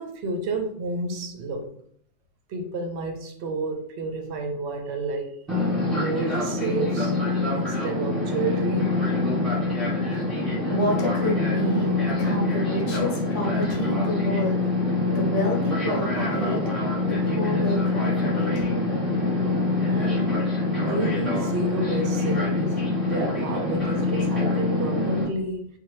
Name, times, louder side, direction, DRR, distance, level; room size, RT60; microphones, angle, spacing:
voice 1, 0.0-1.7 2.5-5.4 5.9-7.1 7.5-9.0 19.9-20.3 20.7-25.7, right 2 dB, 65° right, 0.8 m, -30 dB
Fixed-wing aircraft airplane, 5.5-25.2, left 2 dB, ahead, 1.1 m, -25 dB
voice 2, 9.9-14.7 15.1-16.6 17.1-18.7, equal, 70° left, 1.1 m, -29 dB
2.8 x 2.2 x 3.1 m
omnidirectional pair, 1.3 m